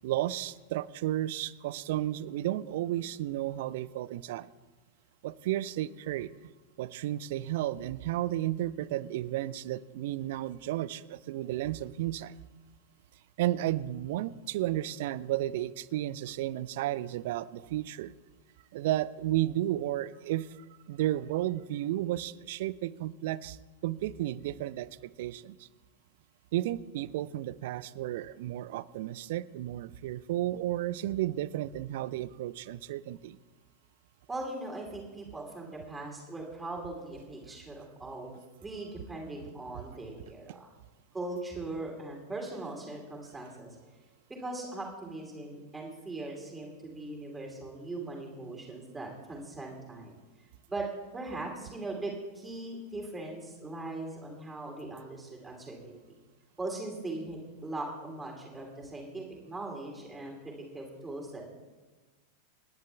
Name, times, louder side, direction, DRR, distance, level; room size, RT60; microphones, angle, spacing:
voice 1, 0.0-4.5 5.2-6.3 6.8-12.3 13.4-18.1 18.7-24.9 25.2-25.7 26.5-33.4, right 14 dB, 55° right, 19 dB, 0.4 m, -33 dB
voice 2, 34.3-40.7 41.1-43.7 44.4-50.1 50.7-50.8 51.1-56.0 56.6-61.4, right 2 dB, 10° right, 0 dB, 2.7 m, -40 dB
29.0 x 10.5 x 2.3 m, 1.3 s
figure-of-eight pair, 90°, 0 cm